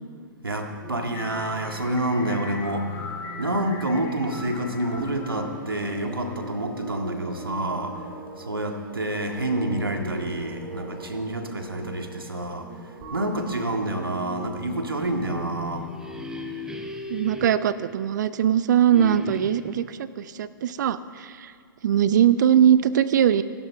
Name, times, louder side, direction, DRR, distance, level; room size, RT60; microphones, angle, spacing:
voice 1, 0.4-2.9 3.4-7.9 8.5-12.7 13.1-15.9, right 1 dB, 85° right, 4 dB, 1.9 m, -28 dB
sound 1, 0.8-15.3, right 2 dB, 30° right, 2.7 m, -40 dB
sound 2, 1.1-6.5, left 4 dB, 30° left, 3.3 m, -41 dB
sound 3, 15.5-18.5 18.9-19.9, left 2 dB, 5° right, 1.1 m, -37 dB
voice 2, 17.1-21.5 21.8-23.4, right 9 dB, 55° right, 15 dB, 0.7 m, -21 dB
25.0 x 12.5 x 3.5 m, 2.3 s
figure-of-eight pair, 110°, 12 cm